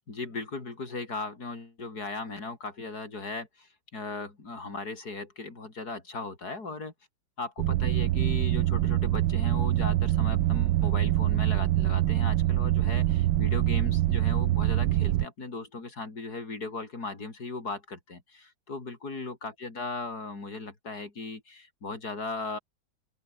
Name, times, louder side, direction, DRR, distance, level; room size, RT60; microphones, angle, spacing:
voice 1, 0.1-6.9 7.4-22.6, left 3 dB, 50° left, 4.5 m, -37 dB
sound 1, 7.6-15.3, right 14 dB, 90° right, 1.5 m, -25 dB
open air
omnidirectional pair, 2.1 m